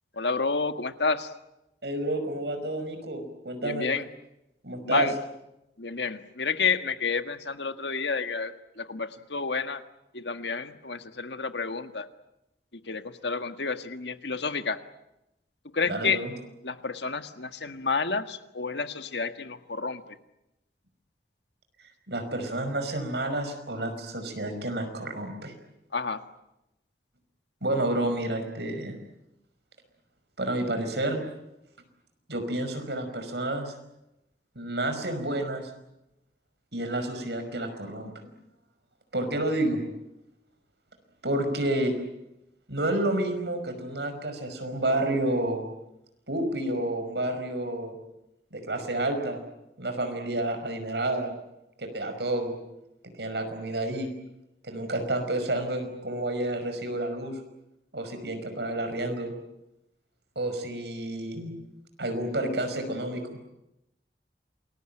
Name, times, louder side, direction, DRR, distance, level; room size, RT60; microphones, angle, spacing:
voice 1, 0.1-1.3 3.6-4.1 4.8-5.2 5.8-9.8 10.1-12.1 12.7-14.8 15.7-16.3 16.6-20.2 25.9-26.2, left 4 dB, 80° left, 9 dB, 1.7 m, -30 dB
voice 2, 1.8-3.9 4.6-5.1 15.8-16.3 22.1-25.5 27.6-29.0 30.4-31.2 32.3-33.8 34.6-35.7 36.7-38.1 39.1-39.8 41.2-41.9 42.7-45.7 46.3-48.0 48.5-49.4 49.8-51.3 51.8-52.5 53.0-54.1 54.6-57.4 57.9-59.3 60.4-61.5 62.0-63.2, right 1 dB, 75° right, 7 dB, 5.6 m, -30 dB
28.0 x 20.5 x 9.0 m, 0.89 s
head